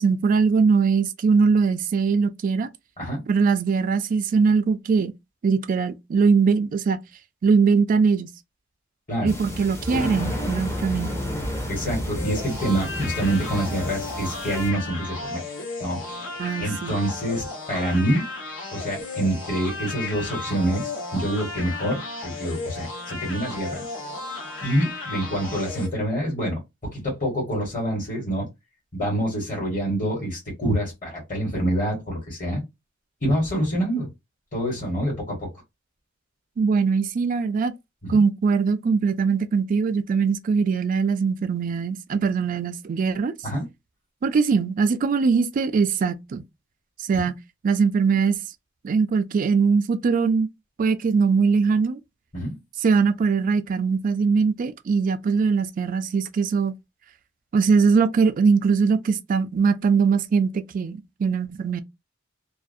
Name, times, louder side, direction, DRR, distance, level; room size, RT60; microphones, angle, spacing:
voice 1, 0.0-2.7 3.3-5.1 5.4-7.0 7.4-8.3 9.2-11.2 16.4-17.0 36.6-37.7 38.1-43.3 44.2-46.4 47.0-47.4 47.6-48.4 48.8-50.5 50.8-52.0 52.8-56.7 57.5-61.8, right 5 dB, 45° right, 0.3 m, -21 dB
sound 1, 9.3-14.7, equal, 15° left, 0.6 m, -31 dB
voice 2, 11.7-15.4 15.8-18.3 18.7-23.8 24.6-28.5 28.9-32.6 33.2-34.1 34.5-35.5 38.1-38.2 43.4-43.6 52.3-52.5, right 1 dB, 40° left, 1.2 m, -26 dB
sound 2, 12.2-25.9, left 3 dB, 80° left, 1.1 m, -34 dB
2.4 x 2.0 x 2.5 m
head